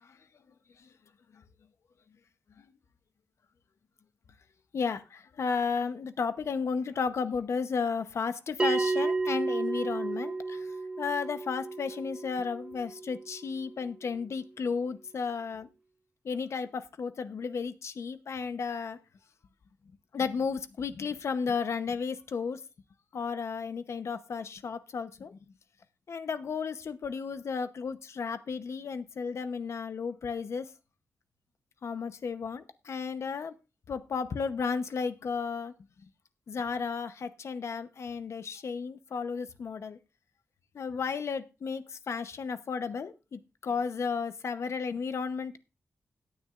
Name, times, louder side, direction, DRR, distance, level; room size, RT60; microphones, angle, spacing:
voice 1, 4.7-10.7 11.0-15.7 16.2-19.0 20.1-22.6 23.1-25.4 26.1-30.7 31.8-33.5 33.9-35.7 36.5-40.0 40.7-45.6, left 5 dB, 70° left, 11 dB, 0.9 m, -33 dB
Bell, 8.6-13.6, right 3 dB, 20° right, 0.6 m, -32 dB
17.0 x 9.6 x 2.5 m, 0.29 s
wide cardioid pair, 130°, 5 cm